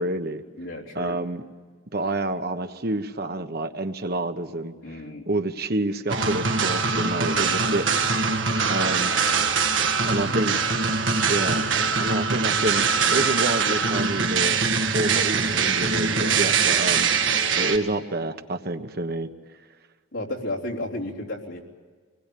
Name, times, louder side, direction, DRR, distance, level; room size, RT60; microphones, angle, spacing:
voice 1, 0.0-0.4 0.9-1.4 1.9-4.7 5.3-8.2 8.7-9.1 10.1-10.6 11.3-11.7 12.0-12.8 13.1-14.6 14.9-17.2 17.6-19.3, right 2 dB, 55° right, 8 dB, 1.2 m, -28 dB
voice 2, 0.6-1.2 4.8-5.3 7.2-7.6 10.2-10.5 16.1-16.4 20.1-21.6, left 1 dB, 90° left, -2 dB, 3.6 m, -34 dB
sound 1, 6.1-17.8, right 5 dB, 80° right, 1.7 m, -23 dB
25.0 x 20.0 x 8.6 m, 1.5 s
head